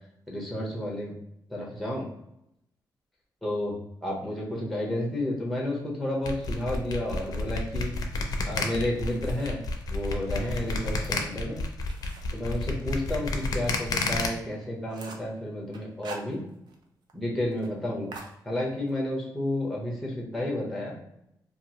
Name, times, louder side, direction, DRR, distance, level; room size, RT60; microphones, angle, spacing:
voice 1, 0.3-1.1 1.5-2.1 3.4-3.7 4.0-7.9 8.5-9.6 9.9-11.6 12.3-16.4 17.1-18.1 18.4-21.0, left 1 dB, ahead, -3 dB, 0.7 m, -31 dB
sound 1, 6.2-14.3, left 3 dB, 55° left, 0.4 m, -30 dB
sound 2, 8.9-9.7 10.2-13.4 13.8-13.9 14.3-14.4 14.6-15.3 15.7-16.8 17.1-17.2 17.5-17.7 18.1-19.0, right 4 dB, 70° right, 0.5 m, -46 dB
2.8 x 2.3 x 2.8 m, 0.79 s
wide cardioid pair, 170°, 8 cm